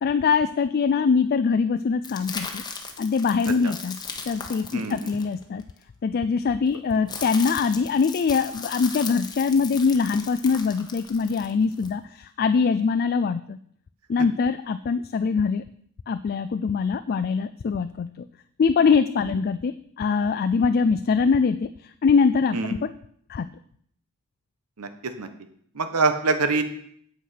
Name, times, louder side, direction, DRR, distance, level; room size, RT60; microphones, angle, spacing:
voice 1, 0.0-2.6 3.0-4.0 4.3-5.6 6.0-13.6 14.1-15.6 16.1-18.1 18.6-21.7 22.0-22.9 23.3-23.5, left 5 dB, 45° left, 11 dB, 0.3 m, -23 dB
sound 1, 2.0-5.8 6.7-11.9, left 5 dB, 20° left, 1.0 m, -37 dB
voice 2, 25.8-26.6, right 3 dB, 85° right, 9 dB, 1.1 m, -23 dB
8.3 x 7.9 x 5.7 m, 0.65 s
head